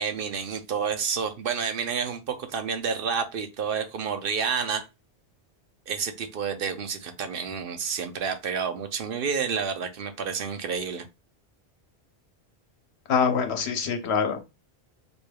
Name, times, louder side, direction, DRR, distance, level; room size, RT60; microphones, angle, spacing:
voice 1, 0.0-4.8 5.9-11.0, right 6 dB, 60° right, 0.8 m, -29 dB
voice 2, 13.1-14.4, left 6 dB, 80° left, 0.9 m, -24 dB
4.3 x 3.3 x 2.2 m
omnidirectional pair, 1.1 m